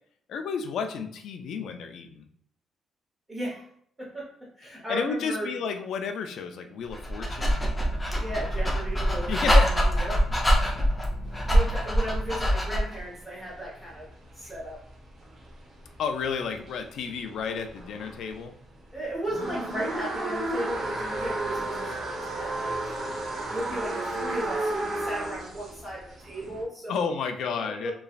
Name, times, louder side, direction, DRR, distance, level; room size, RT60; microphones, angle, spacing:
voice 1, 0.3-2.3 4.9-7.6 9.3-10.2 16.0-18.5 26.9-27.9, left 6 dB, 75° left, 7 dB, 0.3 m, -32 dB
voice 2, 3.3-3.6 4.0-4.2 4.6-5.5 8.2-10.2 11.4-14.1 14.3-14.8 18.9-23.0 23.5-27.0 27.5-27.9, right 1 dB, 15° right, -7 dB, 1.0 m, -35 dB
Dog, 6.9-13.0, equal, 15° left, 0.6 m, -24 dB
sound 1, 11.3-18.3 18.7-26.6, right 2 dB, 45° right, 0.8 m, -33 dB
3.1 x 2.3 x 2.4 m, 0.66 s
cardioid pair, 90°, 0 cm